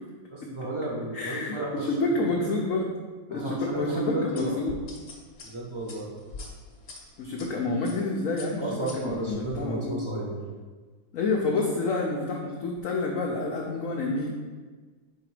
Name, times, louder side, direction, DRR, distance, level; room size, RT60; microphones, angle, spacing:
voice 1, 0.3-1.9 3.3-4.5 5.4-6.1 8.6-10.3, right 2 dB, 20° right, -4 dB, 0.8 m, -33 dB
voice 2, 1.1-2.9 3.3-4.8 7.2-10.0 11.1-14.3, left 2 dB, 65° left, -1 dB, 0.8 m, -28 dB
sound 1, 4.4-7.5 7.8-8.1 8.4-9.6, left 3 dB, 50° left, 1.3 m, -43 dB
5.1 x 3.8 x 4.8 m, 1.4 s
omnidirectional pair, 1.9 m